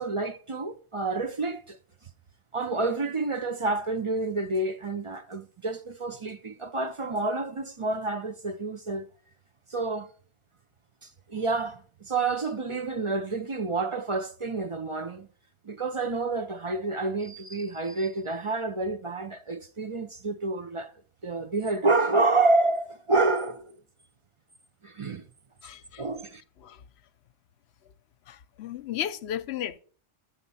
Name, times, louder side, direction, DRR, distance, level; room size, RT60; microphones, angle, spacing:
voice 1, 0.0-1.8 2.5-9.1 9.7-10.1 11.0-15.3 15.6-20.9 21.2-23.8 24.8-25.3 26.0-26.4, right 3 dB, 40° right, 0.5 m, -28 dB
voice 2, 25.6-26.0 26.6-26.8 28.3-29.8, left 10 dB, 70° left, 0.8 m, -34 dB
7.2 x 7.1 x 5.5 m
omnidirectional pair, 1.2 m